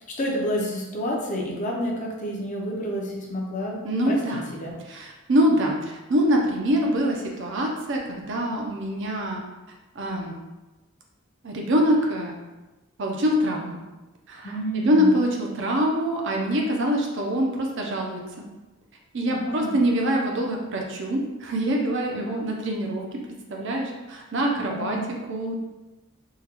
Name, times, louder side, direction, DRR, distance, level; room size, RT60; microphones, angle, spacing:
voice 1, 0.2-4.2 4.6-4.7 14.4-15.1 19.3-19.8 22.1-22.4 24.6-25.1, equal, 35° left, -2 dB, 0.5 m, -29 dB
voice 2, 3.8-4.4 4.9-9.4 10.0-10.3 11.4-12.4 13.0-13.8 14.3-18.2 19.1-25.6, equal, 55° right, 0 dB, 0.5 m, -24 dB
3.7 x 2.2 x 2.9 m, 1.1 s
head